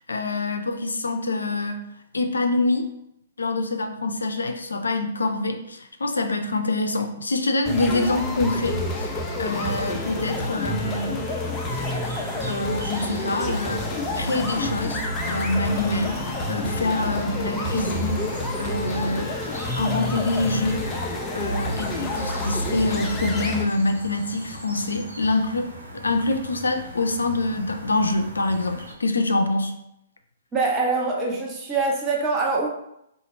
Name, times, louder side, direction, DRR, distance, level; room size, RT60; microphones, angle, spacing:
voice 1, 0.0-1.8 2.1-2.9 3.4-11.3 12.4-16.2 16.5-18.2 18.6-19.3 19.7-20.9 21.3-29.7, left 2 dB, 75° left, 5 dB, 0.5 m, -25 dB
sound 1, 7.6-23.6, left 1 dB, 15° left, 0.5 m, -28 dB
sound 2, 11.7-28.9, equal, 85° right, 1.3 m, -40 dB
voice 2, 30.5-32.7, right 3 dB, 20° right, -2 dB, 0.9 m, -24 dB
3.9 x 2.4 x 4.1 m, 0.79 s
figure-of-eight pair, 120°, 0 cm